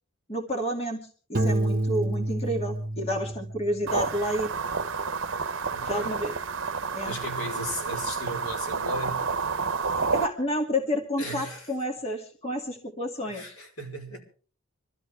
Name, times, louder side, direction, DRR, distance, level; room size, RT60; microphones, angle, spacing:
voice 1, 0.3-4.5 5.8-6.3 6.9-7.1 10.0-13.6, equal, 30° left, 2.4 m, -30 dB
Piano, 1.3-4.1, right 1 dB, 40° right, 1.4 m, -28 dB
sound 1, 3.9-10.3, right 4 dB, 60° right, 0.9 m, -30 dB
voice 2, 5.7-6.2 7.1-9.2 11.2-11.7 13.3-14.2, equal, 85° left, 5.3 m, -36 dB
25.0 x 14.0 x 3.4 m
head